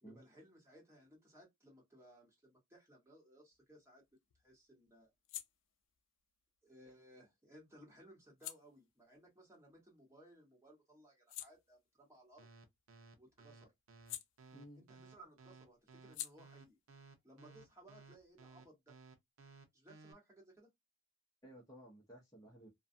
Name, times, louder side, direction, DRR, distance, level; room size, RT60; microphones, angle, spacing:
voice 1, 0.0-4.0 4.4-5.1 6.6-12.4 13.2-13.7 14.8-16.8 17.2-18.9 19.7-20.7, right 1 dB, 15° right, 1.2 m, -61 dB
sound 1, 3.5-10.4 10.8-15.0 15.3-18.7, left 12 dB, 60° left, 0.4 m, -55 dB
sound 2, 12.4-20.1, right 4 dB, 75° right, 0.5 m, -58 dB
voice 2, 14.5-14.8 21.4-22.7, equal, 15° left, 0.8 m, -56 dB
2.4 x 2.3 x 2.5 m
head